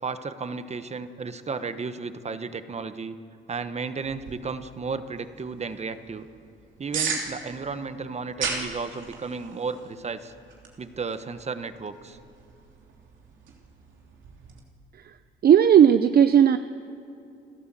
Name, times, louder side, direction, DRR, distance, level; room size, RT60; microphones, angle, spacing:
voice 1, 0.0-3.2 3.5-6.3 6.8-10.3 10.8-12.2, right 4 dB, 35° right, 11 dB, 1.3 m, -33 dB
sound 1, 4.0-14.6, right 5 dB, 70° right, 3.2 m, -38 dB
voice 2, 15.4-16.6, right 9 dB, 50° right, 11 dB, 0.6 m, -15 dB
29.5 x 12.5 x 7.7 m, 2.7 s
cardioid pair, 90°, 20 cm